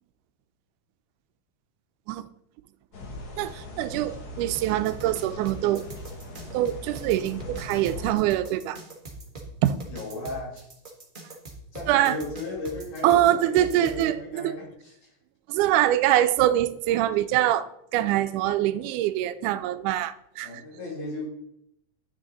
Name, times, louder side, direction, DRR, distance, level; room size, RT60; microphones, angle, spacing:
sound 1, 2.9-8.1, left 1 dB, 55° left, 1.1 m, -40 dB
voice 1, 3.4-5.8 6.5-8.8 9.6-9.8 11.9-12.2 13.0-14.5 15.5-20.5, right 13 dB, 90° right, 14 dB, 2.1 m, -24 dB
sound 2, 4.5-14.0, right 2 dB, 40° right, 0.7 m, -42 dB
voice 2, 9.9-10.7 11.7-15.1 20.4-21.2, left 2 dB, 85° left, -4 dB, 4.4 m, -36 dB
10.5 x 6.3 x 4.0 m, 0.77 s
omnidirectional pair, 3.5 m